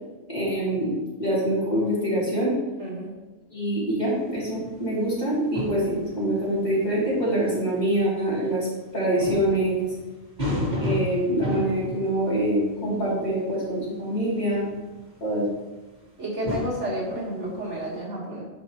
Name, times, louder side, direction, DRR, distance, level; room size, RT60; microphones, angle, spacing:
voice 1, 0.3-0.9 1.2-2.5 3.5-8.7 8.9-9.9 10.8-14.7 15.2-15.4, right 1 dB, 30° left, -8 dB, 2.9 m, -25 dB
voice 2, 2.8-3.1 16.2-18.5, right 1 dB, 55° right, -4 dB, 1.9 m, -31 dB
sound 1, 4.1-4.8 5.5-6.4 7.5-7.6 8.7-8.8 9.2-13.4 14.5-15.5 16.4-17.8, left 1 dB, 30° right, 1.7 m, -32 dB
10.0 x 5.2 x 3.0 m, 1.1 s
omnidirectional pair, 1.5 m